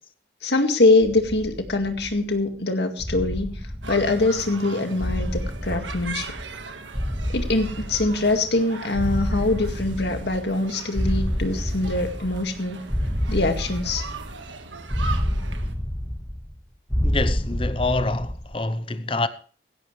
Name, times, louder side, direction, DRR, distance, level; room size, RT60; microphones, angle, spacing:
voice 1, 0.4-3.6 3.9-6.3 7.3-12.8 13.3-14.0, left 2 dB, 65° left, 2.1 m, -23 dB
sound 1, 1.0-2.3 3.0-4.5 5.0-6.6 6.9-8.5 8.9-10.6 10.9-12.6 12.9-14.5 14.9-16.6 16.9-18.5, equal, 5° left, 2.4 m, -28 dB
sound 2, 3.8-15.7, right 4 dB, 90° right, 1.6 m, -39 dB
voice 2, 17.0-19.3, left 2 dB, 30° left, 0.8 m, -26 dB
16.5 x 16.0 x 3.3 m
head